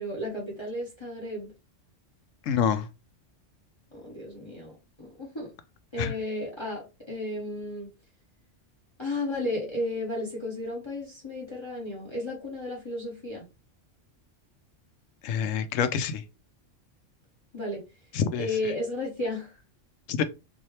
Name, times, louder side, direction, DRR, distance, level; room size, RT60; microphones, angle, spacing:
voice 1, 0.0-1.5 3.9-5.5 5.9-7.9 9.0-13.5 17.5-17.8 18.4-19.6, left 1 dB, 25° left, 1.1 m, -33 dB
voice 2, 2.5-2.9 6.0-6.1 15.2-16.2 18.1-18.5 20.1-20.2, left 7 dB, 90° left, 1.0 m, -26 dB
4.2 x 2.7 x 3.2 m
omnidirectional pair, 1.3 m